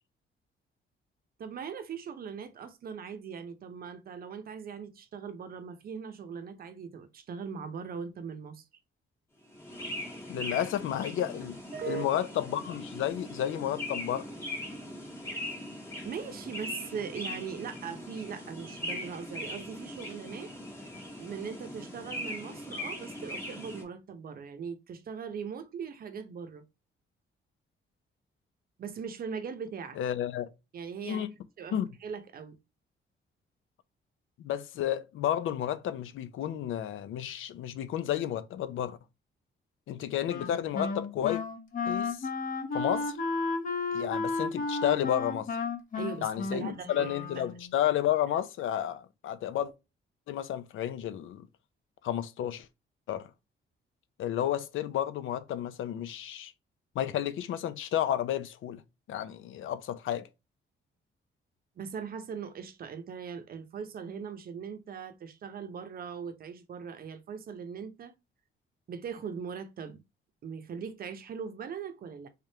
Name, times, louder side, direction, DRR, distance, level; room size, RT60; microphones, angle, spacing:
voice 1, 1.4-8.6 11.7-12.1 16.0-20.5 21.2-26.6 28.8-30.0 30.7-31.3 31.6-32.6 46.0-47.4 61.8-68.1 68.9-70.0 70.4-72.3, right 6 dB, 45° right, 0.7 m, -40 dB
sound 1, 9.5-23.8, left 1 dB, 15° left, 1.1 m, -40 dB
voice 2, 10.3-11.6 11.9-14.3 30.0-30.5 31.0-31.3 31.7-31.9 34.4-39.0 39.9-41.4 41.9-42.3 42.7-43.2 43.9-45.5 46.2-49.7 50.3-51.5 52.0-52.7 53.1-53.3 54.2-56.5 56.9-58.8 59.1-60.3, left 11 dB, 80° left, 0.5 m, -31 dB
Wind instrument woodwind instrument, 40.3-47.7, left 4 dB, 45° left, 0.8 m, -33 dB
3.6 x 3.4 x 2.7 m
wide cardioid pair, 165°, 20 cm